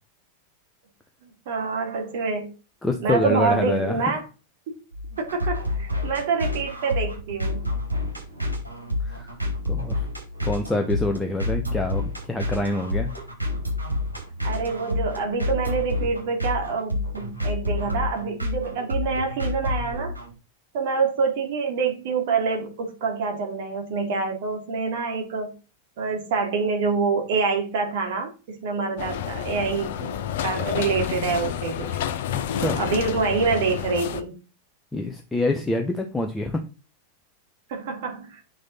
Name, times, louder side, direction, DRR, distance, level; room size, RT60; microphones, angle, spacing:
voice 1, 1.2-2.5 3.0-4.2 5.2-7.6 14.4-20.2 20.7-25.5 26.0-32.0 32.6-34.3 37.7-38.4, right 5 dB, 50° right, 2 dB, 3.1 m, -26 dB
voice 2, 2.8-4.1 9.0-9.4 9.6-10.1 10.4-13.1 32.5-32.8 34.9-36.6, left 2 dB, 10° left, 4 dB, 1.2 m, -26 dB
sound 1, 4.9-20.3, left 2 dB, 85° right, 5.3 m, -29 dB
sound 2, 29.0-34.2, left 10 dB, 55° left, 0.9 m, -29 dB
8.8 x 6.6 x 4.2 m, 0.33 s
figure-of-eight pair, 90°, 0 cm